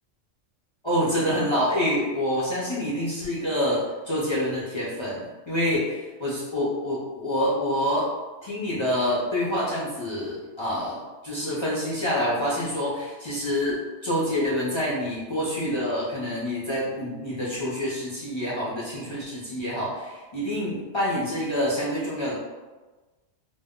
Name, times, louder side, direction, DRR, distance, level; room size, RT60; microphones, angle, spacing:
voice 1, 0.8-8.1 8.4-11.0 11.2-13.8 14.0-22.3, equal, 45° left, -8 dB, 0.4 m, -27 dB
2.1 x 2.0 x 3.5 m, 1.2 s
omnidirectional pair, 1.2 m